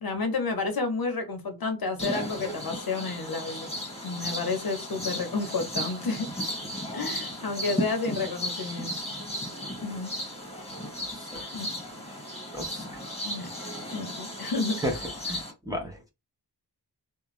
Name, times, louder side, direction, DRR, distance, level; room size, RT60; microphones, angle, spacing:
voice 1, 0.0-3.7 4.0-6.3 6.9-8.9 9.8-10.1 11.5-11.7 13.2-13.5 13.9-14.8, left 3 dB, 60° left, 0.7 m, -30 dB
sound 1, 2.0-15.5, equal, 15° left, 1.0 m, -35 dB
voice 2, 12.5-13.0 14.8-14.9 15.3-16.0, equal, 10° right, 0.7 m, -33 dB
2.5 x 2.1 x 3.0 m
wide cardioid pair, 115°, 42 cm